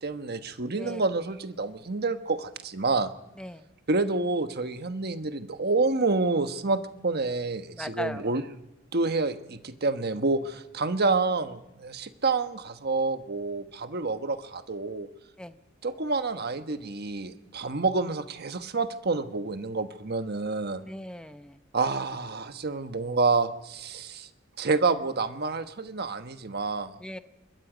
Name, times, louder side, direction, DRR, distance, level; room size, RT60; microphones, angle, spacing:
voice 1, 0.0-3.1 3.9-8.4 8.9-15.1 15.8-20.8 21.7-24.3 24.6-26.9, right 3 dB, 55° right, 9 dB, 1.3 m, -28 dB
voice 2, 7.7-8.3 15.4-15.5 20.8-21.6 27.0-27.2, left 1 dB, 5° left, 10 dB, 0.8 m, -38 dB
25.0 x 21.5 x 5.1 m, 0.96 s
head